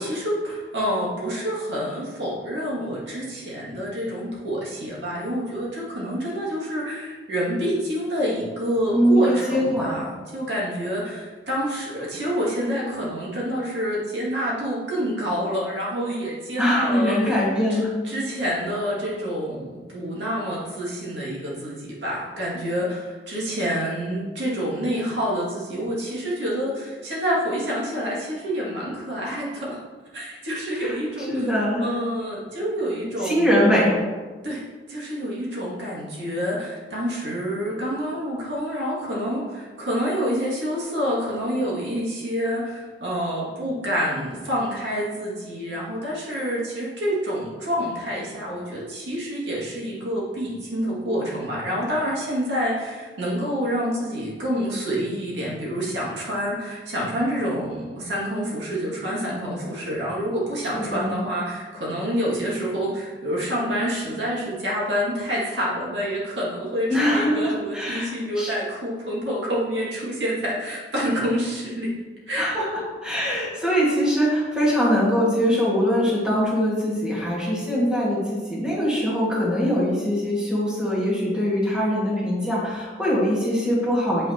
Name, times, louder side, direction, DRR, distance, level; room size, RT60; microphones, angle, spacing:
voice 1, 0.0-17.4 17.7-29.8 30.1-31.5 31.8-33.5 34.4-34.6 34.9-71.9 72.3-72.5 73.3-73.4, equal, 80° right, -6 dB, 2.1 m, -27 dB
voice 2, 8.9-9.9 16.6-17.9 30.8-30.9 31.3-31.8 33.2-34.0 60.7-61.2 66.9-68.5 72.4-84.3, equal, 5° right, -7 dB, 1.7 m, -22 dB
8.2 x 5.6 x 2.9 m, 1.4 s
head